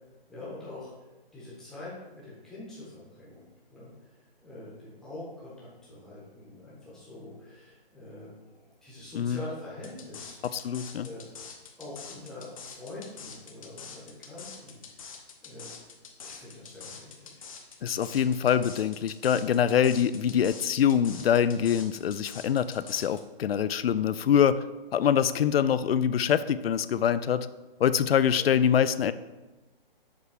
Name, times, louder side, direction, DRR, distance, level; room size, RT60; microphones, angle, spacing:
voice 1, 0.3-0.9 1.3-10.4 11.0-11.3 11.8-15.7 16.2-17.5 28.3-28.5, left 2 dB, ahead, -8 dB, 0.9 m, -45 dB
sound 1, 9.8-23.2, left 6 dB, 35° left, 0.7 m, -45 dB
voice 2, 10.4-11.1 17.8-24.6 24.9-27.5 27.8-29.1, left 8 dB, 75° left, 15 dB, 0.5 m, -24 dB
7.2 x 3.3 x 4.8 m, 1.1 s
hypercardioid pair, 165°, 30 cm